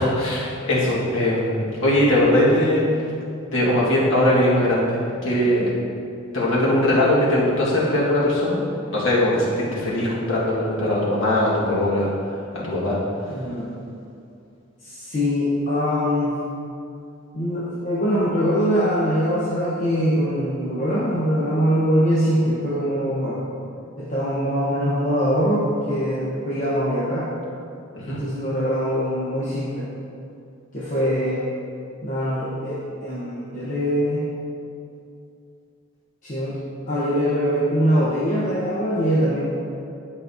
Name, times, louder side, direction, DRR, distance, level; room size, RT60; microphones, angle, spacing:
voice 1, 0.0-3.1 3.5-5.7 6.3-8.6 8.9-12.1 12.5-13.0 27.9-28.2, left 1 dB, 65° left, -7 dB, 1.8 m, -20 dB
voice 2, 13.3-13.7 14.8-16.4 17.3-23.4 24.0-27.3 28.1-29.9 30.7-31.4 32.0-34.2 36.2-36.6 36.9-39.4, equal, 40° left, -9 dB, 1.1 m, -23 dB
10.5 x 5.4 x 2.8 m, 2.5 s
head